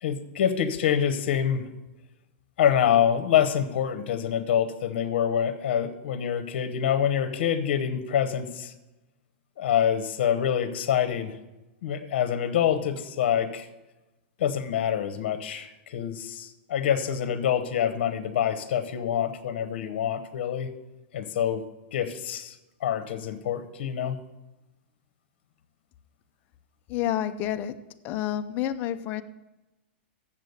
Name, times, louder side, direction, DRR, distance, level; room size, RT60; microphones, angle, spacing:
voice 1, 0.0-1.7 2.6-8.7 9.6-11.4 11.8-13.7 14.4-20.7 21.1-21.6 21.9-22.6 22.8-24.2, left 9 dB, 65° left, 10 dB, 1.0 m, -26 dB
voice 2, 26.9-27.7 28.0-29.2, left 11 dB, 30° left, 10 dB, 0.5 m, -29 dB
7.4 x 6.9 x 8.0 m, 1.0 s
supercardioid pair, 155°, 6 cm